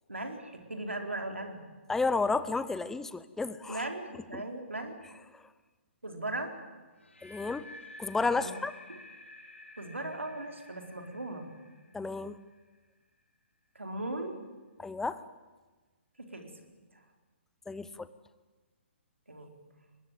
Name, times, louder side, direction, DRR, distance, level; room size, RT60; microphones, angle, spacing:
voice 1, 0.1-1.6 3.7-4.9 6.0-6.6 8.4-8.5 8.9-9.0 9.8-11.5 13.7-14.4 16.3-16.5 19.3-19.5, right 2 dB, 90° right, 4 dB, 4.2 m, -38 dB
voice 2, 1.9-3.8 4.3-4.4 7.2-7.6 8.0-8.7 11.9-12.4 14.8-15.2 17.7-18.1, left 3 dB, 5° left, 15 dB, 0.9 m, -31 dB
sound 1, 6.9-13.0, left 2 dB, 90° left, 4.6 m, -51 dB
23.5 x 20.0 x 9.1 m, 1.3 s
figure-of-eight pair, 130°, 7 cm